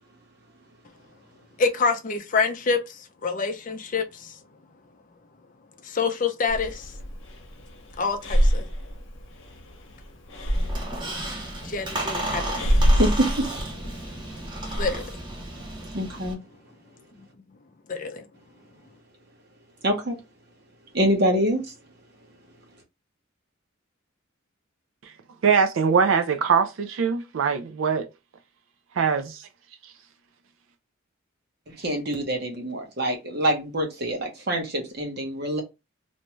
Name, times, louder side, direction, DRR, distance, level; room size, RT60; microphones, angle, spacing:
voice 1, 1.6-4.3 5.8-6.9 8.0-8.7 11.6-12.7 14.8-15.0 17.9-18.2, left 4 dB, 40° left, 0.4 m, -27 dB
Breathing, 6.5-15.0, equal, 65° left, 0.8 m, -27 dB
Squeak, 10.5-16.3, right 1 dB, 20° right, 0.7 m, -33 dB
voice 2, 13.0-13.4 15.9-16.4 19.8-20.2 20.9-21.6 31.8-35.6, right 1 dB, 50° right, 0.9 m, -25 dB
voice 3, 25.4-28.1 29.0-29.5, right 6 dB, 75° right, 0.4 m, -22 dB
2.6 x 2.2 x 3.0 m
head